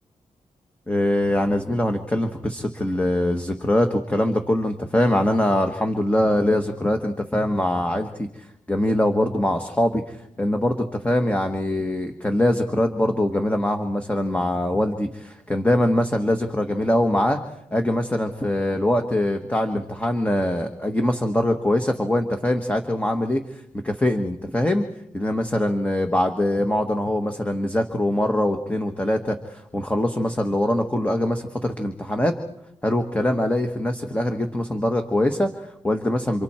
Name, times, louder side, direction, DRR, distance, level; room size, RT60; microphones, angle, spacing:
voice 1, 0.9-17.4 17.7-24.8 25.1-32.3 32.8-36.4, left 1 dB, 10° left, 5 dB, 1.4 m, -23 dB
29.0 x 27.0 x 4.4 m, 0.77 s
wide cardioid pair, 115°, 13 cm